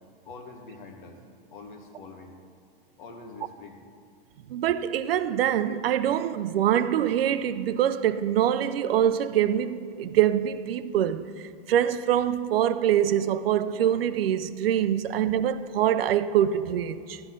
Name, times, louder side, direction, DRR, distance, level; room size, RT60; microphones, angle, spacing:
voice 1, 0.2-1.2 1.5-2.3 3.0-3.8, left 3 dB, 55° left, 1.5 m, -44 dB
voice 2, 4.5-11.3 11.7-17.2, right 10 dB, 70° right, 0.6 m, -24 dB
13.0 x 9.6 x 3.8 m
supercardioid pair, 175°, 30 cm